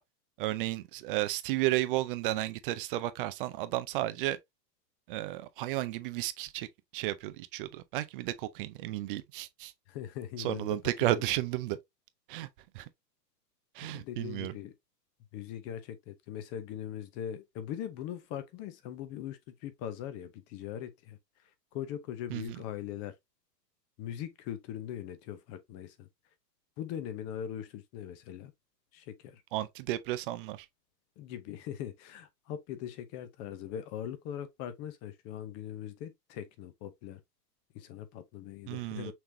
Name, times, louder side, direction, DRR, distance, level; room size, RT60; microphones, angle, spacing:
voice 1, 0.4-4.4 5.1-6.7 6.9-9.7 10.4-11.8 12.3-12.5 12.7-12.9 13.8-14.5 22.3-22.4 29.5-30.7 38.7-39.1, right 15 dB, 35° right, 0.5 m, -33 dB
voice 2, 9.9-10.8 11.2-11.3 13.8-14.7 15.3-21.2 21.7-23.1 24.0-26.1 26.8-28.5 28.9-29.4 31.2-37.2 37.7-39.1, left 10 dB, 30° left, 0.8 m, -41 dB
6.0 x 3.3 x 2.6 m
hypercardioid pair, 130°, 50 cm